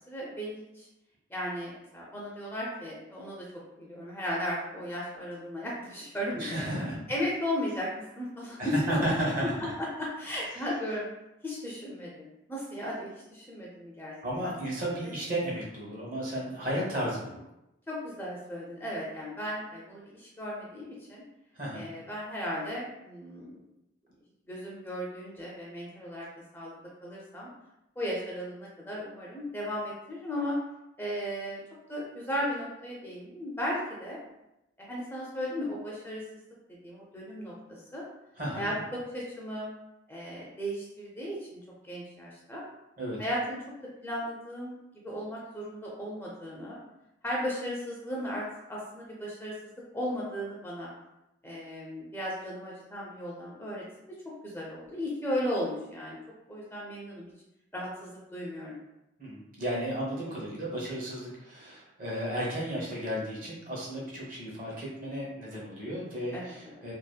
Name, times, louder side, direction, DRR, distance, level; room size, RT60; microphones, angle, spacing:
voice 1, 0.1-0.9 1.3-3.5 3.8-6.6 7.1-9.0 9.4-9.5 9.8-11.1 11.4-14.1 14.4-14.5 17.9-21.2 21.7-23.6 24.5-26.3 26.5-26.7 27.0-27.5 28.0-30.6 31.0-31.6 31.9-34.2 34.8-36.2 36.7-38.0 38.5-39.7 40.1-42.6 43.2-43.6 44.0-44.7 45.0-46.8 47.2-50.9 51.4-54.2 54.4-56.2 56.5-57.3 57.7-58.8 66.3-66.9, equal, 10° left, -5 dB, 0.3 m, -36 dB
voice 2, 6.4-7.0 8.6-9.5 10.5-10.7 14.2-17.4 21.5-21.9 38.4-38.8 43.0-43.2 59.2-66.9, right 1 dB, 45° right, -5 dB, 0.8 m, -33 dB
2.7 x 2.4 x 2.2 m, 0.90 s
head